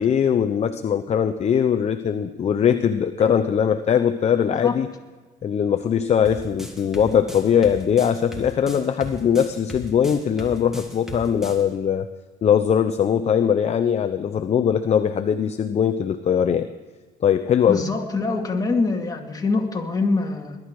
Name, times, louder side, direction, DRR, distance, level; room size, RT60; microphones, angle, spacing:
voice 1, 0.0-4.9 5.4-12.1 12.4-16.7 17.2-17.8, left 8 dB, 40° left, 9 dB, 0.8 m, -21 dB
sound 1, 6.2-11.6, equal, 5° right, 2.7 m, -37 dB
voice 2, 17.7-20.6, left 3 dB, 20° left, 1 dB, 2.4 m, -24 dB
20.5 x 12.0 x 4.8 m, 1.3 s
cardioid pair, 110°, 17 cm